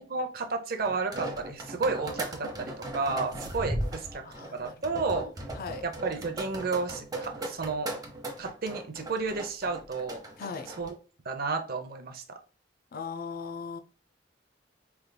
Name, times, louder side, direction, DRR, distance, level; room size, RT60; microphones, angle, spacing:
voice 1, 0.1-4.2 4.5-5.3 5.8-7.9 8.4-10.2 10.8-11.0 11.2-12.4, right 4 dB, 55° right, 6 dB, 0.7 m, -32 dB
sound 1, 0.8-10.9, right 1 dB, 20° right, 0.9 m, -37 dB
voice 2, 4.2-4.7 5.1-5.8 10.4-10.7 12.9-13.8, left 5 dB, 55° left, 8 dB, 0.5 m, -39 dB
4.6 x 3.4 x 2.2 m, 0.37 s
head